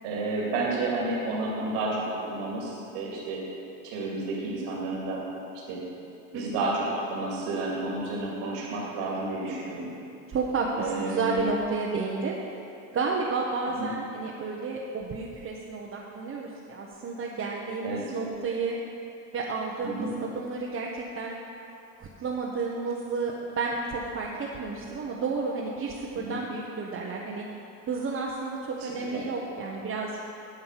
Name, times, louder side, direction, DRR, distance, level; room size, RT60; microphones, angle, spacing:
voice 1, 0.0-3.4 3.8-5.2 5.7-5.8 6.3-9.9 10.8-11.4 13.7-13.9 17.8-18.1 19.8-20.1 26.1-26.4 28.8-29.3, right 2 dB, 70° right, -4 dB, 2.5 m, -31 dB
voice 2, 10.3-12.4 12.9-18.8 19.3-21.3 22.0-27.4 27.9-30.2, right 4 dB, 35° right, -3 dB, 1.1 m, -31 dB
9.8 x 5.2 x 7.4 m, 2.8 s
supercardioid pair, 95°, 40 cm